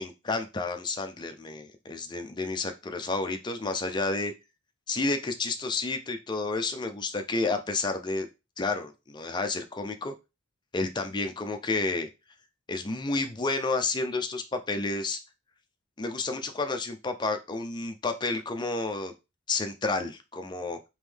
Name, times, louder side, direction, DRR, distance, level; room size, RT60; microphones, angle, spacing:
voice 1, 0.0-4.3 4.9-8.3 8.6-10.1 10.7-12.1 12.7-15.2 16.0-19.1 19.5-20.8, left 3 dB, 20° left, 6 dB, 0.4 m, -30 dB
3.6 x 3.0 x 3.3 m, 0.26 s
head